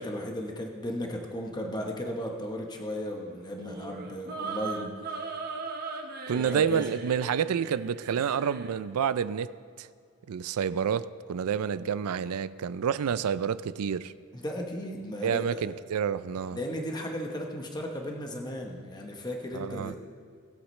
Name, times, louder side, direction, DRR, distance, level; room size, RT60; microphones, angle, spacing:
voice 1, 0.0-5.1 6.3-6.9 11.5-11.6 14.3-15.7 16.5-20.0, equal, 20° left, 1.0 m, -35 dB
sound 1, 3.5-8.8, right 4 dB, 45° right, 1.0 m, -39 dB
voice 2, 6.3-9.5 9.8-9.9 10.3-14.1 15.2-16.6 19.5-19.9, right 7 dB, 75° right, 0.4 m, -29 dB
19.5 x 8.1 x 3.2 m
head